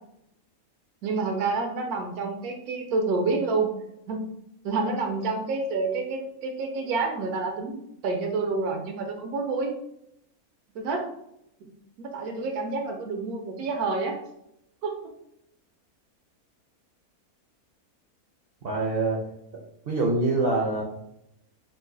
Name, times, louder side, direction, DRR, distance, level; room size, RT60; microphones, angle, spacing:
voice 1, 1.0-3.7 4.1-4.3 4.6-9.7 10.7-11.1 11.6-11.7 12.0-14.2 14.8-14.9, right 3 dB, 90° right, 3 dB, 1.1 m, -28 dB
voice 2, 18.6-19.2 19.9-20.8, right 2 dB, 65° right, -2 dB, 0.6 m, -24 dB
3.0 x 2.5 x 3.7 m, 0.79 s
omnidirectional pair, 1.5 m